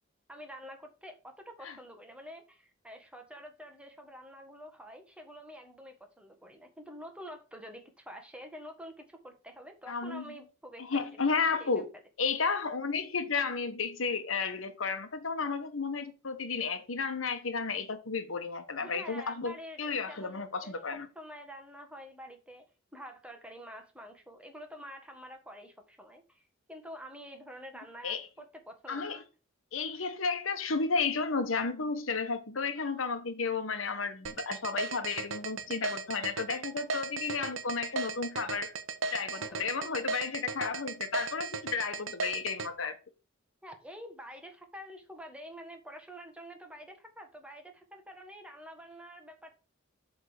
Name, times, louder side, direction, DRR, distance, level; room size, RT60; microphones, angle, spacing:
voice 1, 0.3-11.0 11.6-11.8 18.8-20.7 21.1-22.7 22.9-26.4 26.7-29.2 39.3-39.6 43.6-49.5, equal, 5° right, 1.4 m, -48 dB
voice 2, 9.9-10.2 10.8-11.9 12.2-21.1 28.0-28.3 28.9-29.2 29.7-38.7 39.1-43.0, left 4 dB, 85° left, 1.1 m, -33 dB
sound 1, 34.2-42.7, right 4 dB, 75° right, 0.8 m, -35 dB
7.9 x 3.6 x 6.4 m
head